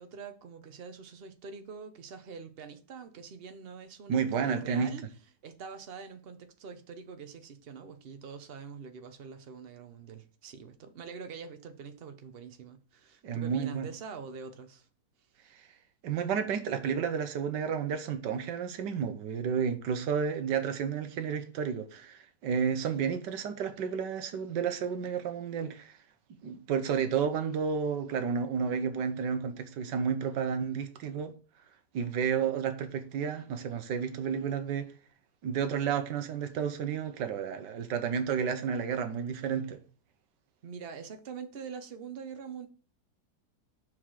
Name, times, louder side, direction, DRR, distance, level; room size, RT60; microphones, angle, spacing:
voice 1, 0.0-5.0 5.4-14.9 40.6-42.7, right 6 dB, 45° right, 0.8 m, -44 dB
voice 2, 4.1-4.9 13.2-13.9 16.0-25.9 26.4-31.3 31.9-34.9 35.4-39.8, right 7 dB, 90° right, 1.5 m, -31 dB
5.8 x 4.8 x 4.7 m
omnidirectional pair, 1.8 m